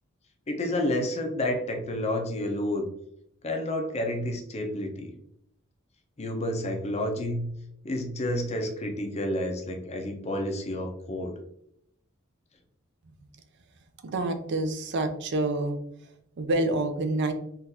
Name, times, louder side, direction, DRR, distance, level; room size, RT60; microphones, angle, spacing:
voice 1, 0.5-2.9 3.4-5.1 6.2-7.5 7.8-11.4, left 1 dB, 30° left, 3 dB, 0.5 m, -30 dB
voice 2, 14.0-15.8 16.4-17.3, right 2 dB, 55° right, 7 dB, 0.5 m, -27 dB
3.7 x 2.4 x 2.8 m, 0.73 s
head